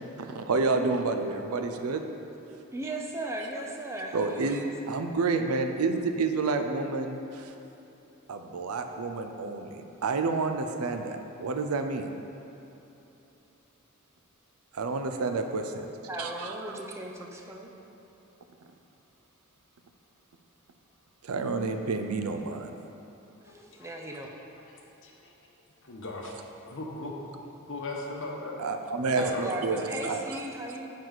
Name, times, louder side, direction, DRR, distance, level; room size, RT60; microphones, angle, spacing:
voice 1, 0.0-2.0 4.1-4.6 4.9-7.5 8.3-12.1 14.7-15.9 16.2-16.6 21.2-22.7 28.6-30.2, right 3 dB, 85° right, 6 dB, 0.5 m, -29 dB
voice 2, 2.7-4.7 16.1-17.7 23.4-24.3 29.2-30.8, right 1 dB, 15° right, 0 dB, 0.6 m, -36 dB
voice 3, 23.5-23.9 24.6-25.3 25.8-27.1 27.7-28.6 29.1-29.7, left 2 dB, 60° left, -1 dB, 1.0 m, -39 dB
9.2 x 4.7 x 4.0 m, 3.0 s
head